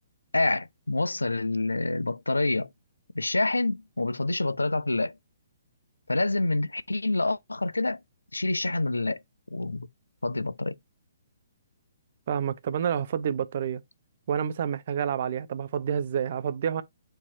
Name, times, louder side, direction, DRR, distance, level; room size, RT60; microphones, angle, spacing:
voice 1, 0.3-2.7 3.1-5.1 6.1-8.0 8.3-9.2 9.5-9.9 10.2-10.7, left 2 dB, 75° left, 0.4 m, -27 dB
voice 2, 12.3-13.8 14.3-16.8, right 8 dB, 45° right, 0.5 m, -28 dB
4.4 x 2.8 x 4.3 m
figure-of-eight pair, 125°, 0 cm